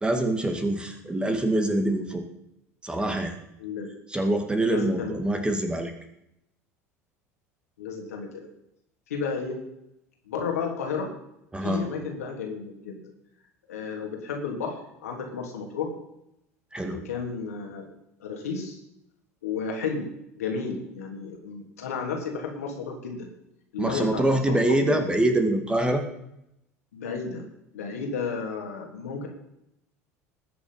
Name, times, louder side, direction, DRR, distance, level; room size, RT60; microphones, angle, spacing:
voice 1, 0.0-2.2 2.8-3.4 4.1-5.9 11.5-11.9 16.7-17.0 23.8-26.0, right 1 dB, 10° right, 5 dB, 2.2 m, -25 dB
voice 2, 4.7-5.2 7.8-8.3 9.1-9.6 10.3-11.1 11.6-13.0 13.7-15.9 16.9-17.9 18.2-18.8 19.4-20.1 20.4-23.3 23.7-25.1 26.9-27.5 27.7-29.3, left 5 dB, 75° left, 1 dB, 3.3 m, -32 dB
20.0 x 7.2 x 5.7 m, 0.82 s
figure-of-eight pair, 70°, 8 cm